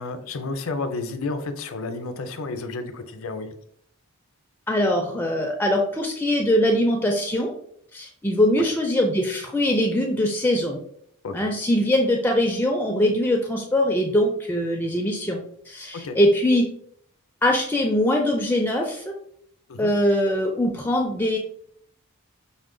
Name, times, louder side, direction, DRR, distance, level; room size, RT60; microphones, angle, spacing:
voice 1, 0.0-3.5 8.6-8.7 11.2-11.5 15.9-16.2 19.7-19.9, left 3 dB, 65° left, 8 dB, 0.5 m, -31 dB
voice 2, 4.7-7.5 7.9-10.8 11.3-15.4 15.7-16.7 17.4-19.1 19.8-21.4, left 1 dB, 10° left, 2 dB, 0.3 m, -22 dB
5.6 x 2.1 x 3.7 m, 0.66 s
head